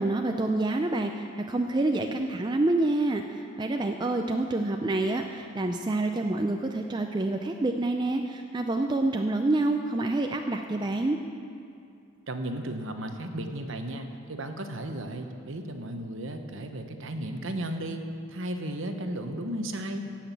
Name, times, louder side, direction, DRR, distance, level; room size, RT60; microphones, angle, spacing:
voice 1, 0.0-11.2, right 2 dB, 20° right, 4 dB, 0.4 m, -27 dB
voice 2, 12.3-18.0 18.3-20.0, right 1 dB, 60° right, 6 dB, 1.0 m, -34 dB
16.0 x 6.0 x 8.3 m, 2.5 s
head